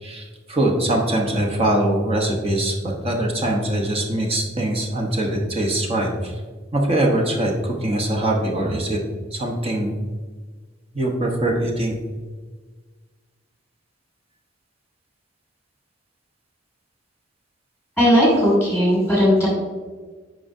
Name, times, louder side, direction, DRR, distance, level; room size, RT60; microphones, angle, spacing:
voice 1, 0.0-6.3 6.7-9.0 9.3-9.9 10.9-12.0, right 1 dB, 30° right, 0 dB, 1.0 m, -22 dB
voice 2, 18.0-19.5, equal, 5° right, -6 dB, 2.0 m, -17 dB
9.5 x 5.2 x 2.7 m, 1.4 s
head